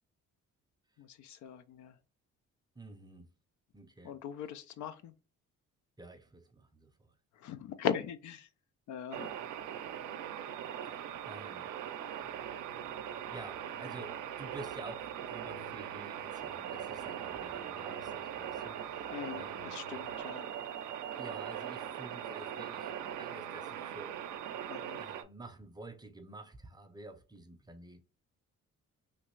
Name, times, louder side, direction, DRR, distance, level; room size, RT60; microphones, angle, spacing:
voice 1, 1.0-2.0 4.0-5.1 7.3-8.5 8.9-9.3 19.1-20.5 24.7-25.0, left 8 dB, 70° left, 0.5 m, -39 dB
voice 2, 2.7-3.3 3.7-4.1 6.0-7.1 10.8-11.0 11.2-11.7 13.3-19.1 19.4-19.7 21.1-22.9 23.2-24.3 25.0-28.0, right 2 dB, 15° right, 0.6 m, -50 dB
sound 1, 9.1-25.2, right 9 dB, 85° right, 0.5 m, -41 dB
sound 2, 12.2-20.2, left 5 dB, 55° left, 0.9 m, -62 dB
3.2 x 2.4 x 3.1 m
cardioid pair, 90°, 30 cm